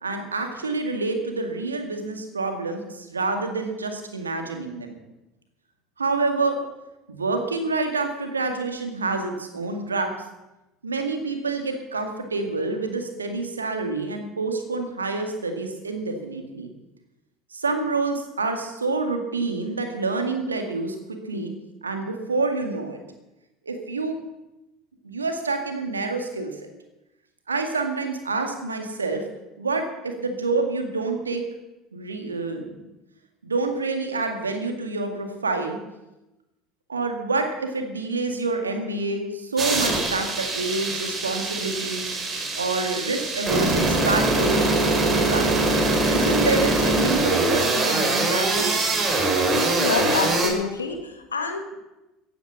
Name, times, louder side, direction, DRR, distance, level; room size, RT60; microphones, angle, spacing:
voice 1, 0.0-4.9 6.0-6.6 7.1-10.1 10.8-16.7 17.5-21.0 21.3-21.5 21.8-23.0 23.7-24.2 25.0-26.5 27.5-29.2 29.6-31.4 31.9-32.7 33.4-35.8 36.9-42.1 42.6-45.5 46.1-48.9, right 3 dB, 85° right, 5 dB, 2.0 m, -27 dB
sound 1, 39.6-50.5, right 2 dB, 30° right, 4.6 m, -23 dB
voice 2, 49.5-51.8, left 4 dB, 85° left, 5 dB, 1.7 m, -27 dB
15.5 x 10.0 x 7.2 m, 0.99 s
figure-of-eight pair, 65°, 0 cm